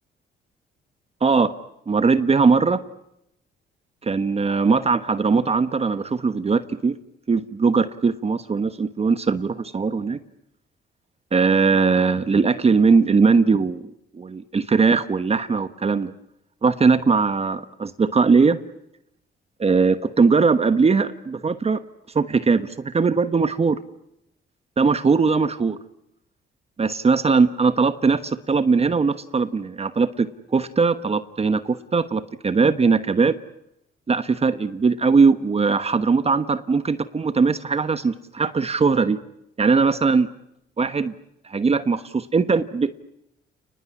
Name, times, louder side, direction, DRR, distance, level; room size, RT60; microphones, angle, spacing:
voice 1, 1.2-1.5 1.9-2.8 4.0-6.9 7.3-10.2 11.3-13.8 14.1-16.1 16.6-18.6 19.6-21.8 22.1-23.8 24.8-25.8 26.8-30.3 30.5-33.3 34.1-39.2 39.6-40.3 40.8-41.1 41.4-42.9, right 4 dB, 30° right, 11 dB, 1.2 m, -20 dB
30.0 x 20.0 x 9.8 m, 0.83 s
cardioid pair, 90°, 20 cm